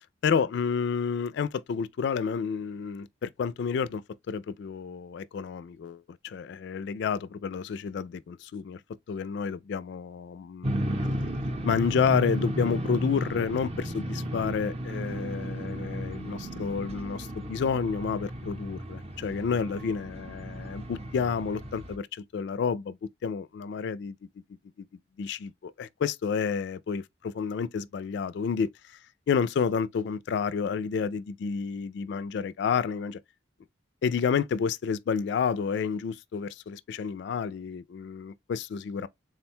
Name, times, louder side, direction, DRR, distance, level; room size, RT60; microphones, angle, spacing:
voice 1, 0.2-8.8 9.1-10.8 11.6-23.0 23.2-24.1 25.2-28.7 29.3-33.2 34.0-39.1, left 6 dB, 60° left, 0.3 m, -30 dB
sound 1, 10.6-22.0, equal, 35° right, 0.6 m, -34 dB
3.7 x 2.2 x 4.3 m
head